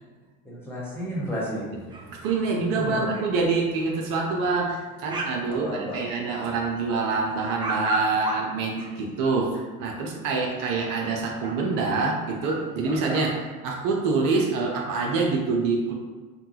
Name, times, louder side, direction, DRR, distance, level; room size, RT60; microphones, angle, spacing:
voice 1, 0.4-1.7 2.6-3.1 5.5-6.0, equal, 5° left, -8 dB, 1.5 m, -32 dB
sound 1, 1.9-2.4 2.7-2.8 3.0-3.2 3.9-4.0 4.4-5.4 5.7-6.4 6.7-9.3 10.3-11.1 11.4-11.5 12.1-12.2 12.4-13.3, right 2 dB, 10° right, 0.4 m, -35 dB
voice 2, 2.1-15.9, right 4 dB, 50° right, -1 dB, 0.7 m, -26 dB
3.7 x 2.3 x 2.8 m, 1.4 s
hypercardioid pair, 75°, 43 cm